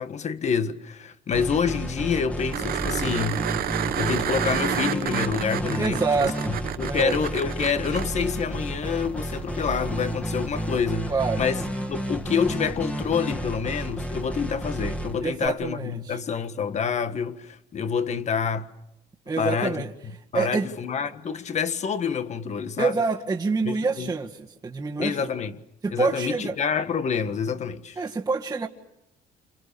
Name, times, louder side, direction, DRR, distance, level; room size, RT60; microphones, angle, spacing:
voice 1, 0.0-11.6 11.9-18.7 19.4-19.8 20.3-22.9 23.6-24.1 25.0-25.5 25.9-28.0, left 6 dB, 40° left, 1.6 m, -27 dB
sound 1, 1.3-15.5, right 1 dB, 10° left, 2.2 m, -31 dB
sound 2, 2.5-8.1 10.7-10.8, right 11 dB, 60° right, 1.0 m, -30 dB
voice 2, 5.8-6.6 6.9-7.2 11.1-11.4 15.2-16.2 19.3-19.9 20.3-20.7 22.8-25.3 25.8-26.5 28.0-28.7, right 4 dB, 20° right, 1.8 m, -26 dB
29.5 x 28.0 x 7.0 m
cardioid pair, 110°, 17 cm